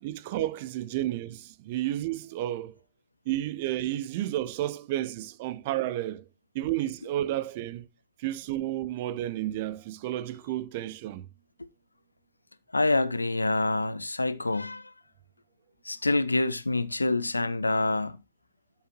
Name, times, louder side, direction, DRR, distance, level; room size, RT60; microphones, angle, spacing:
voice 1, 0.0-2.7 3.3-6.3 6.5-7.9 8.2-11.3, right 14 dB, 50° right, 0.9 m, -31 dB
voice 2, 12.7-14.9 15.8-18.2, left 2 dB, 80° left, 0.7 m, -26 dB
12.5 x 7.4 x 2.9 m
figure-of-eight pair, 90°, 0 cm